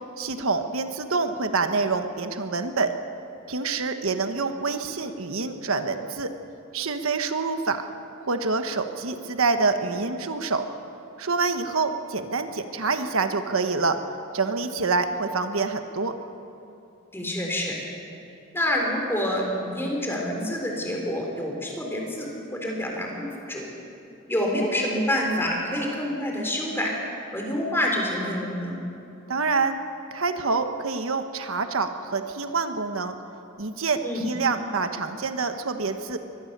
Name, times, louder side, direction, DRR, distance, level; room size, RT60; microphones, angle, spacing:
voice 1, 0.2-2.9 3.5-6.3 6.7-7.9 8.2-10.7 11.2-14.0 14.3-16.1 29.3-29.8 30.1-33.1 33.6-36.2, right 4 dB, 90° right, 7 dB, 1.3 m, -26 dB
voice 2, 17.1-17.8 18.5-23.7 24.3-26.9 27.3-28.8 34.0-34.3, left 1 dB, 10° left, 0 dB, 3.8 m, -27 dB
23.5 x 18.5 x 6.8 m, 2.7 s
head